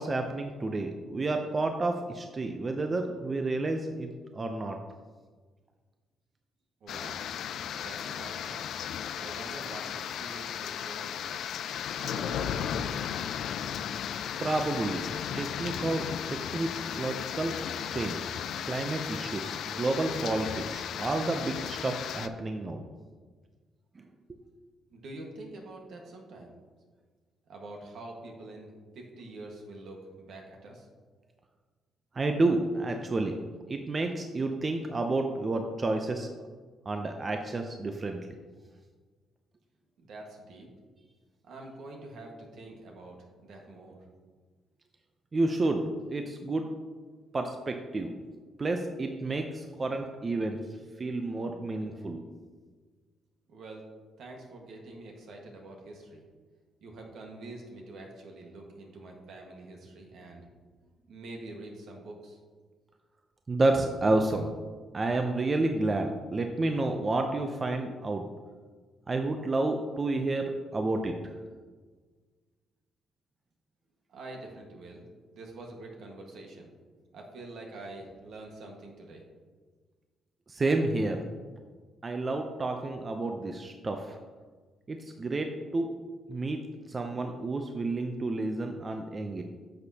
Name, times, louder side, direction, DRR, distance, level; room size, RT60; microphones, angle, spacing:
voice 1, 0.0-4.8 14.4-15.1 15.4-17.6 17.9-18.3 18.7-22.8 24.0-24.4 32.1-33.4 33.7-36.3 36.9-38.2 45.3-46.7 47.3-48.1 48.6-50.6 51.0-52.3 63.5-64.5 64.9-68.3 69.1-71.2 80.5-81.2 82.0-84.2 84.9-86.0 86.3-86.6 86.9-89.4, right 2 dB, 30° right, 4 dB, 0.6 m, -30 dB
voice 2, 6.8-7.2 7.7-8.6 9.2-11.4 12.0-12.8 24.9-26.5 27.5-30.9 40.0-40.7 41.4-44.0 53.5-53.8 54.2-56.2 56.8-60.5 61.1-62.4 74.1-75.0 75.3-76.7 77.1-79.2, right 2 dB, 70° right, 1 dB, 1.6 m, -46 dB
sound 1, 6.9-22.3, left 8 dB, 75° left, 0.4 m, -35 dB
10.0 x 6.3 x 2.9 m, 1.5 s
cardioid pair, 90°, 0 cm